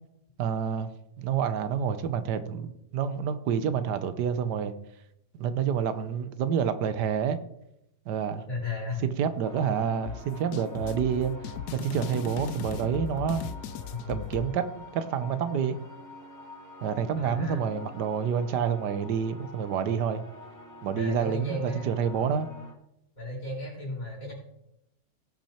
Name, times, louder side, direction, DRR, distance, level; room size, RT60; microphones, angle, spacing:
voice 1, 0.4-0.9 1.2-4.7 5.3-7.4 8.1-8.4 9.0-11.3 11.7-13.4 14.1-14.7 14.9-15.8 16.8-20.2 20.8-22.5, right 7 dB, 80° right, 12 dB, 1.4 m, -28 dB
voice 2, 8.5-9.0 13.9-14.3 17.2-17.7 20.9-22.3 23.2-24.3, left 2 dB, 55° left, -2 dB, 4.3 m, -35 dB
sound 1, 9.4-22.7, left 1 dB, 10° left, 1.6 m, -47 dB
sound 2, 10.1-14.5, left 9 dB, 75° left, 1.1 m, -37 dB
17.5 x 6.0 x 4.3 m, 0.82 s
omnidirectional pair, 1.8 m